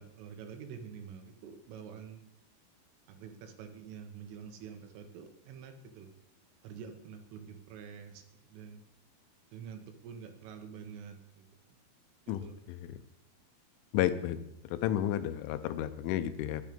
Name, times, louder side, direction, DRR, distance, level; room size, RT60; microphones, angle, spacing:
voice 1, 0.0-2.2 3.1-6.1 6.6-8.2 8.5-8.8 9.5-11.5 12.3-12.6, right 7 dB, 85° right, 6 dB, 3.7 m, -47 dB
voice 2, 12.3-12.8 13.9-14.4 14.7-16.6, left 12 dB, 85° left, 11 dB, 3.1 m, -32 dB
11.0 x 9.9 x 5.2 m, 0.82 s
omnidirectional pair, 5.7 m